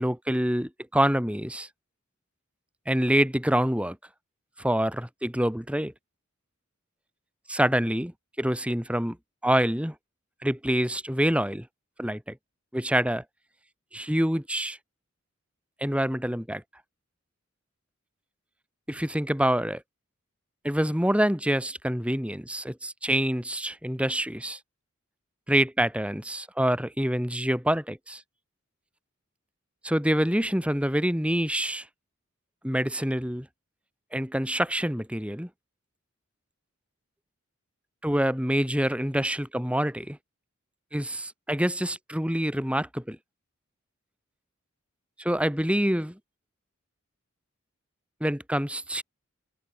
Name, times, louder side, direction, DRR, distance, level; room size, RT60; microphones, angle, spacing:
voice 1, 0.0-1.7 2.9-4.0 4.6-5.9 7.5-8.1 8.4-9.2 9.4-9.9 10.4-11.7 12.0-12.4 12.7-13.2 13.9-14.8 15.8-16.6 18.9-19.8 20.6-24.6 25.5-28.2 29.8-31.9 32.6-33.5 34.1-35.5 38.0-40.2 40.9-43.2 45.2-46.2 48.2-49.0, equal, 5° right, 3.7 m, -26 dB
head